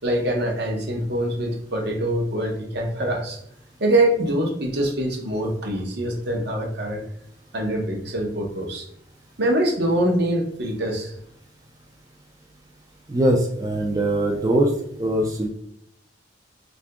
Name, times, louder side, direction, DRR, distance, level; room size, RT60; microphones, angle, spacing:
voice 1, 0.0-3.4 3.8-7.0 7.5-8.9 9.4-11.1, right 1 dB, 60° right, 1 dB, 0.8 m, -24 dB
voice 2, 13.1-14.7 15.0-15.5, right 1 dB, 20° right, -1 dB, 0.4 m, -21 dB
2.7 x 2.5 x 3.4 m, 0.71 s
head